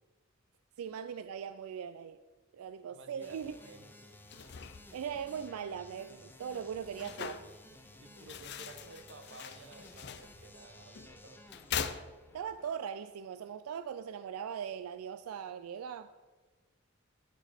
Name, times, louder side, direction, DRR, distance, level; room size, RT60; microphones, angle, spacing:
voice 1, 0.8-2.2 2.5-3.5 4.9-7.4 12.3-16.1, right 7 dB, 90° right, 10 dB, 0.3 m, -40 dB
voice 2, 2.6-4.0 8.0-11.4, right 2 dB, 60° right, 6 dB, 1.0 m, -54 dB
sound 1, 3.2-12.8, left 1 dB, 10° left, 0.6 m, -56 dB
sound 2, 4.1-12.7, left 7 dB, 50° left, 0.5 m, -44 dB
13.0 x 5.1 x 4.2 m, 1.3 s
head